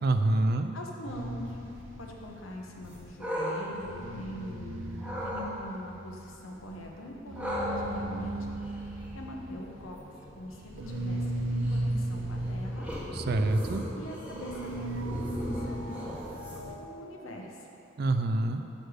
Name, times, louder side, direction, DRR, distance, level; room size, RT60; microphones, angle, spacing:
voice 1, 0.0-0.7 13.1-13.8 18.0-18.6, right 2 dB, 50° right, 8 dB, 0.3 m, -26 dB
voice 2, 0.7-1.6 2.0-8.4 8.9-10.0 10.3-12.9 13.9-16.0 16.8-17.7, left 1 dB, 75° left, 0 dB, 1.0 m, -43 dB
sound 1, 1.1-3.4 3.7-16.8, right 1 dB, 65° right, 0.7 m, -36 dB
sound 2, 2.8-4.6 5.0-5.5 7.4-16.8, equal, 5° right, 1.1 m, -38 dB
6.5 x 4.8 x 6.3 m, 2.9 s
head